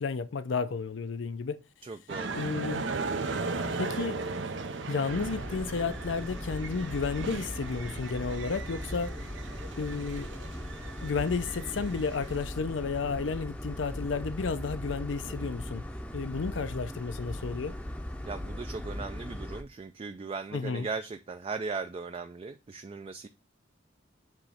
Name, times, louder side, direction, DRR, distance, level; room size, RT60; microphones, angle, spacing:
voice 1, 0.0-1.6 2.4-2.8 3.8-4.2 4.9-9.2 9.8-10.3 11.0-15.8 16.1-17.7 20.5-20.9, left 5 dB, 90° left, 0.5 m, -32 dB
voice 2, 1.8-2.3 15.2-15.5 18.3-23.3, right 4 dB, 30° right, 0.3 m, -38 dB
sound 1, 2.1-12.4, right 3 dB, 80° right, 0.8 m, -37 dB
sound 2, 5.1-19.6, left 1 dB, 5° left, 0.6 m, -39 dB
7.6 x 3.1 x 4.9 m
head